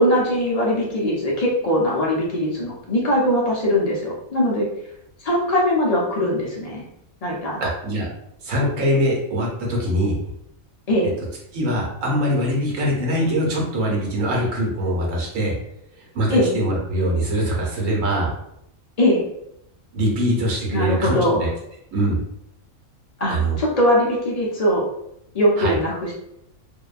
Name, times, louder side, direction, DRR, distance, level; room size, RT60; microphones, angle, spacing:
voice 1, 0.0-4.7 5.2-6.8 7.2-7.6 10.9-11.1 16.3-16.5 19.0-19.2 20.7-21.4 23.2-24.8 25.3-26.1, equal, 60° left, -4 dB, 0.4 m, -21 dB
voice 2, 7.6-8.1 8.4-10.2 11.5-15.5 16.0-18.3 19.9-21.5 21.9-22.2 23.3-23.6 25.6-25.7, equal, 70° right, -2 dB, 1.2 m, -22 dB
2.7 x 2.1 x 2.4 m, 0.77 s
omnidirectional pair, 1.4 m